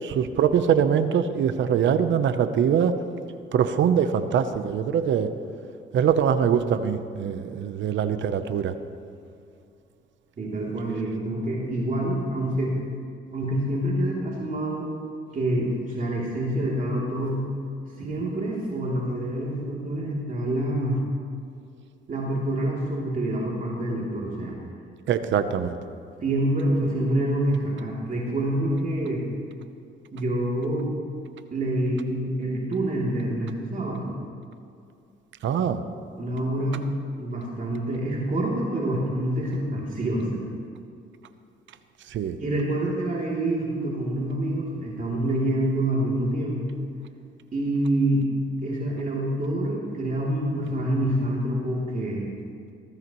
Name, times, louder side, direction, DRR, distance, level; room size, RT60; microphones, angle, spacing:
voice 1, 0.0-2.9 3.5-5.3 5.9-8.7 25.1-25.7 35.4-35.8 42.1-42.4, right 8 dB, 70° right, 10 dB, 0.9 m, -23 dB
voice 2, 10.4-12.7 13.3-14.9 15.3-17.4 18.0-21.0 22.1-24.5 26.2-29.2 30.1-30.9 31.5-34.1 36.1-36.8 37.2-40.4 42.4-46.7 47.5-48.2 48.6-52.3, right 1 dB, 40° right, -5 dB, 3.1 m, -26 dB
19.0 x 14.5 x 3.1 m, 2.5 s
cardioid pair, 90°, 20 cm